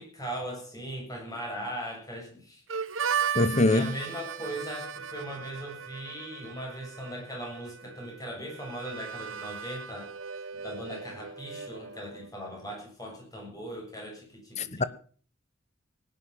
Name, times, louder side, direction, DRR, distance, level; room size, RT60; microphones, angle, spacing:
voice 1, 0.0-2.6 3.4-10.1 10.5-14.8, equal, 20° left, 7.3 m, -39 dB
Harmonica, 2.7-12.3, right 7 dB, 80° right, 1.1 m, -37 dB
voice 2, 3.3-3.9 14.6-14.8, left 2 dB, 35° left, 1.0 m, -23 dB
19.0 x 10.0 x 5.8 m
head